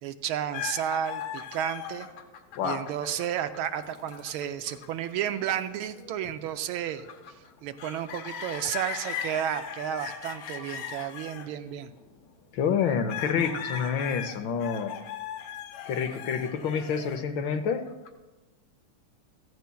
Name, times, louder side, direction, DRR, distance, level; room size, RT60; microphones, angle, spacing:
voice 1, 0.0-2.1 2.6-7.1 7.6-11.9, right 10 dB, 80° right, 10 dB, 1.3 m, -32 dB
sound 1, 0.5-12.5 13.1-18.1, left 8 dB, 90° left, 1.8 m, -39 dB
voice 2, 12.5-14.9 15.8-17.9, left 6 dB, 70° left, 8 dB, 1.3 m, -28 dB
15.0 x 15.0 x 2.3 m, 1.1 s
omnidirectional pair, 2.4 m